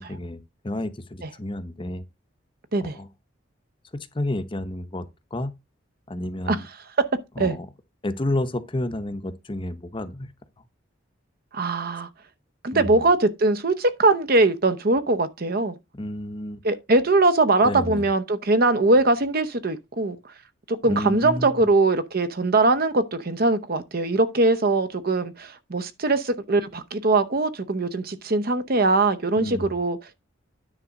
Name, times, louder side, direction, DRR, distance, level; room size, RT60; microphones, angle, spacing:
voice 1, 0.0-2.0 2.8-3.1 3.9-5.0 5.3-5.5 6.1-6.7 7.4-7.7 8.0-10.3 12.7-13.1 15.9-16.6 17.6-18.1 20.9-21.7 29.4-29.6, left 1 dB, 25° left, 0.8 m, -30 dB
voice 2, 11.5-12.1 12.6-15.7 16.6-20.2 20.7-30.2, right 2 dB, 50° right, 0.8 m, -21 dB
9.8 x 3.6 x 6.2 m
head